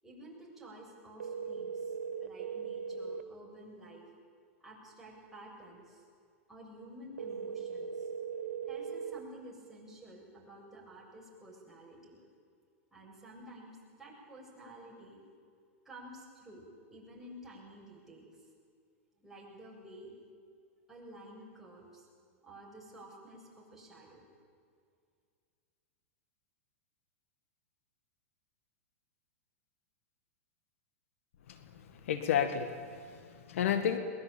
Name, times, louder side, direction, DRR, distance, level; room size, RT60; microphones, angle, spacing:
voice 1, 0.0-4.1 4.6-6.1 6.5-8.1 8.7-12.2 12.9-15.2 15.8-18.3 19.2-20.1 20.9-24.3, right 1 dB, 5° right, -4 dB, 7.7 m, -52 dB
sound 1, 1.2-3.2 7.2-9.2, right 6 dB, 85° right, 1.8 m, -39 dB
voice 2, 31.5-34.0, left 8 dB, 70° left, 9 dB, 1.9 m, -32 dB
22.0 x 21.0 x 9.0 m, 2.2 s
hypercardioid pair, 125°, 8 cm